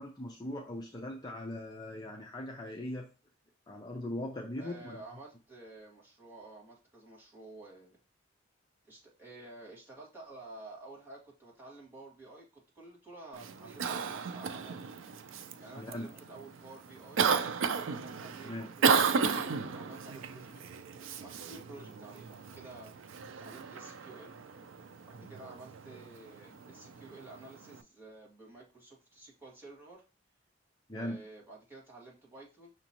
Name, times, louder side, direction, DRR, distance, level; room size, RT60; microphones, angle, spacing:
voice 1, 0.0-3.1 3.7-5.0 15.8-16.1 18.4-18.7 25.2-25.3 30.9-31.2, left 1 dB, 20° left, 0 dB, 0.6 m, -40 dB
voice 2, 4.6-8.0 8.9-15.0 15.6-17.2 17.9-20.6 21.2-22.9 23.4-24.4 25.1-30.0 30.9-32.7, right 2 dB, 10° right, -4 dB, 1.6 m, -51 dB
Cough, 13.3-27.8, right 5 dB, 75° right, 0.4 m, -34 dB
6.0 x 2.9 x 2.8 m, 0.32 s
head